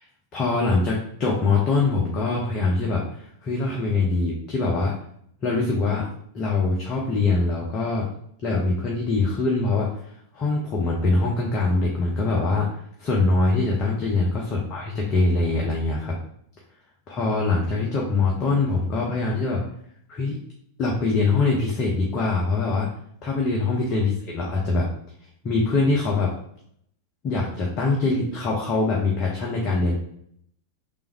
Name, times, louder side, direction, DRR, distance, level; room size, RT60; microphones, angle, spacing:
voice 1, 0.3-4.9 5.4-6.1 6.3-8.1 8.4-10.0 10.3-16.2 17.1-19.6 20.1-20.4 20.8-22.9 23.2-24.9 25.4-26.3 27.2-30.0, left 3 dB, 30° left, -3 dB, 0.8 m, -23 dB
3.5 x 2.6 x 4.6 m, 0.68 s
figure-of-eight pair, 90°, 0 cm